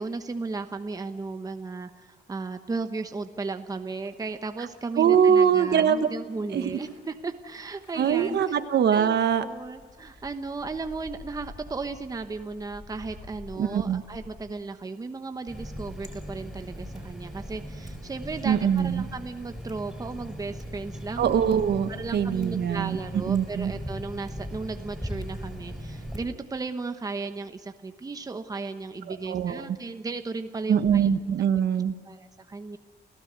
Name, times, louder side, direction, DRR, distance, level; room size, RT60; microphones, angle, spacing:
voice 1, 0.0-8.6 8.9-21.4 21.9-31.1 32.1-32.8, right 3 dB, 20° right, 7 dB, 1.0 m, -35 dB
sound 1, 4.0-14.4, left 2 dB, 25° left, 6.5 m, -50 dB
voice 2, 5.0-6.1 6.5-6.8 8.0-9.4 13.6-14.0 18.4-19.0 21.2-23.7 29.1-29.6 30.7-31.9, right 8 dB, 65° right, 9 dB, 1.4 m, -23 dB
Water tap faucet, 15.5-26.2, equal, ahead, 5.4 m, -38 dB
29.5 x 16.5 x 8.1 m, 1.5 s
wide cardioid pair, 165°, 18 cm